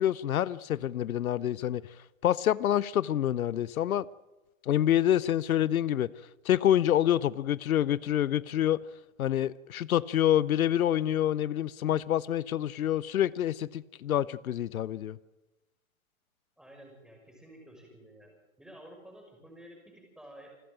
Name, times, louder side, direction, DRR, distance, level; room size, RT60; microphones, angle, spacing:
voice 1, 0.0-1.8 2.2-4.1 4.6-6.1 6.4-8.8 9.2-15.2, left 11 dB, 85° left, 0.7 m, -27 dB
voice 2, 16.6-18.3 18.6-20.5, right 1 dB, ahead, 6.0 m, -51 dB
27.5 x 13.0 x 8.9 m
hypercardioid pair, 140°, 41 cm